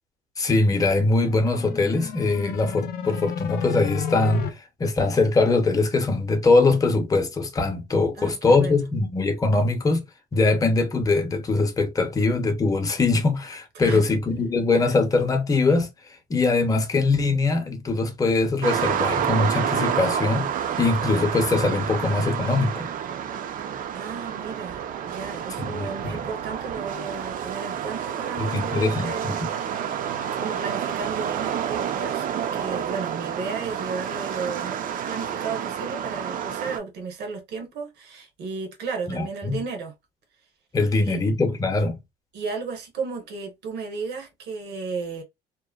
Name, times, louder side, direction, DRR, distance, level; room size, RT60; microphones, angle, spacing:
voice 1, 0.4-4.5 4.8-10.0 10.3-15.9 16.3-20.5 20.8-22.9 25.6-25.9 28.4-29.4 39.1-39.6 40.7-42.0, left 3 dB, 20° left, 0.7 m, -22 dB
sound 1, 1.2-4.5, left 8 dB, 65° left, 0.6 m, -32 dB
voice 2, 8.2-8.8 13.7-14.1 23.9-29.4 30.0-39.9 41.0-41.2 42.3-45.2, right 4 dB, 80° right, 1.0 m, -34 dB
sound 2, 18.6-36.8, right 8 dB, 55° right, 0.5 m, -29 dB
2.8 x 2.1 x 2.3 m
cardioid pair, 110°, 17 cm